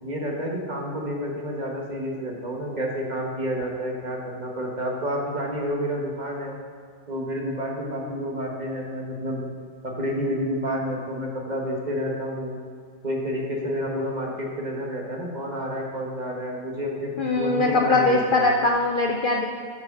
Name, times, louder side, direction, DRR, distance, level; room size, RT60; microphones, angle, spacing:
voice 1, 0.0-6.6 7.1-9.5 9.8-12.6 13.0-18.5, equal, 30° right, -1 dB, 1.2 m, -29 dB
voice 2, 17.2-19.4, left 2 dB, 75° left, 1 dB, 0.4 m, -21 dB
8.5 x 4.9 x 6.7 m, 2.1 s
omnidirectional pair, 1.6 m